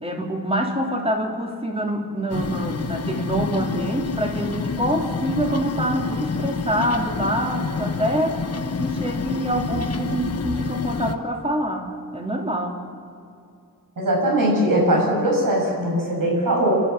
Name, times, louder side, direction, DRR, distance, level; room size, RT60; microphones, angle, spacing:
voice 1, 0.0-8.4 8.8-11.9 12.1-12.8, right 1 dB, 15° right, 0 dB, 3.4 m, -25 dB
sound 1, 2.3-11.1, left 4 dB, 45° left, 1.0 m, -28 dB
voice 2, 14.0-16.7, right 1 dB, 65° right, -2 dB, 7.4 m, -20 dB
29.5 x 13.0 x 8.0 m, 2.5 s
wide cardioid pair, 140°, 36 cm